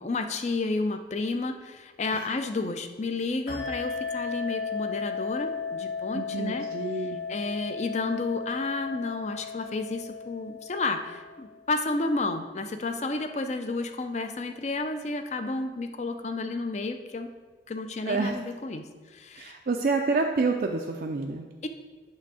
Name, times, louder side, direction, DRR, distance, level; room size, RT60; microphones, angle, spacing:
voice 1, 0.0-6.6 7.3-17.3 17.7-18.9 19.1-19.5 21.6-21.7, left 3 dB, 35° left, 7 dB, 0.5 m, -31 dB
sound 1, 3.5-11.6, left 5 dB, 70° left, 2.0 m, -35 dB
voice 2, 6.1-7.2 18.1-18.4 19.3-21.5, right 3 dB, 50° right, 2 dB, 0.4 m, -28 dB
8.6 x 3.4 x 6.2 m, 1.4 s
head